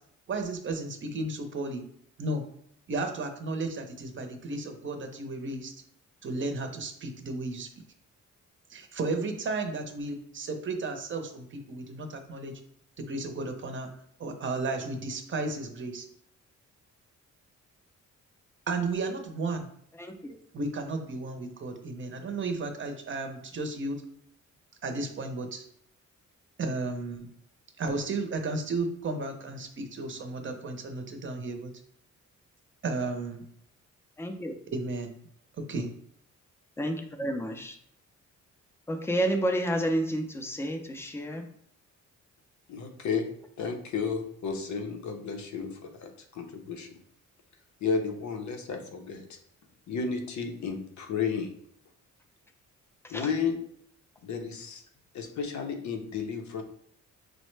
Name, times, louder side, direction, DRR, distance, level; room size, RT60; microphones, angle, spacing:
voice 1, 0.3-1.8 2.2-2.5 2.9-5.7 6.2-7.7 8.7-12.6 13.0-13.9 14.2-16.1 18.7-19.7 20.5-24.0 24.8-25.6 26.6-27.3 27.8-31.7 32.8-33.5 34.7-35.2 35.6-35.9, right 3 dB, 40° right, 6 dB, 0.6 m, -33 dB
voice 2, 34.2-34.5 36.8-37.8 38.9-41.4 53.1-53.3, right 1 dB, 10° left, 5 dB, 0.4 m, -30 dB
voice 3, 42.7-43.3 43.6-46.9 47.8-49.2 49.9-51.5 53.1-53.6 54.2-54.8 55.1-56.6, left 5 dB, 70° left, 5 dB, 0.7 m, -32 dB
6.2 x 2.1 x 3.1 m, 0.67 s
cardioid pair, 135°, 30 cm